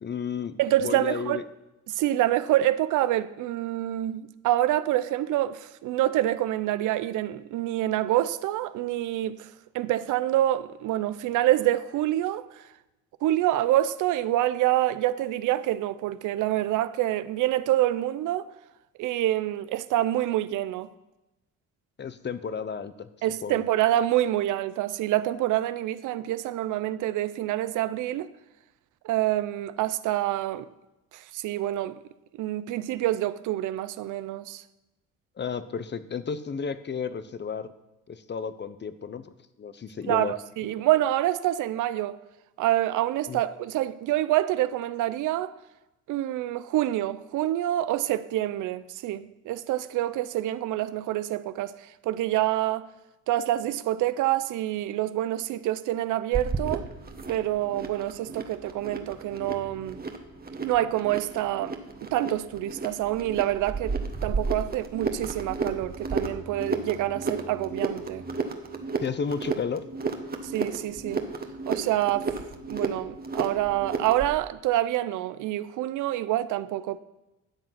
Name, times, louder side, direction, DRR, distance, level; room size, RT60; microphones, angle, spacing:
voice 1, 0.0-1.4 22.0-23.1 23.4-23.6 35.4-37.7 38.1-39.3 39.6-40.3 43.3-43.4 69.0-69.8, left 6 dB, 35° left, 0.8 m, -32 dB
voice 2, 0.6-1.4 1.9-9.5 9.7-12.6 13.2-18.5 19.0-20.9 23.2-28.3 29.0-30.7 31.1-32.0 32.3-34.6 40.1-42.2 42.6-45.5 46.1-51.7 52.0-52.9 53.3-56.9 57.3-60.0 60.6-61.8 62.0-68.2 70.5-71.3 71.7-72.3 72.7-77.0, right 14 dB, 85° right, 0.6 m, -27 dB
sound 1, 56.3-74.4, right 4 dB, 30° right, 1.3 m, -33 dB
12.5 x 7.7 x 5.8 m
cardioid pair, 90°, 30 cm